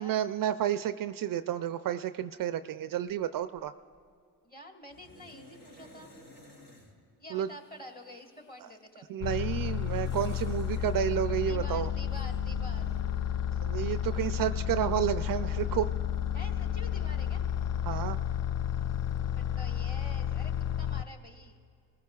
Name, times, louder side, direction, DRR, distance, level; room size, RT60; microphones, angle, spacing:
voice 1, 0.0-3.7 7.3-7.5 9.1-11.9 13.6-15.9 17.9-18.2, right 10 dB, 50° right, 12 dB, 0.5 m, -31 dB
sound 1, 3.1-3.3 3.6-4.0 4.9-6.9 7.4-8.8 9.5-11.5 12.1-13.0, left 1 dB, 70° left, 4.2 m, -53 dB
voice 2, 4.4-6.1 7.2-9.1 11.5-12.9 16.3-17.4 19.3-21.6, equal, 20° left, 3 dB, 1.7 m, -48 dB
sound 2, 9.2-21.0, left 9 dB, 40° left, 0.4 m, -31 dB
23.0 x 15.5 x 2.4 m, 2.4 s
hypercardioid pair, 50°, 43 cm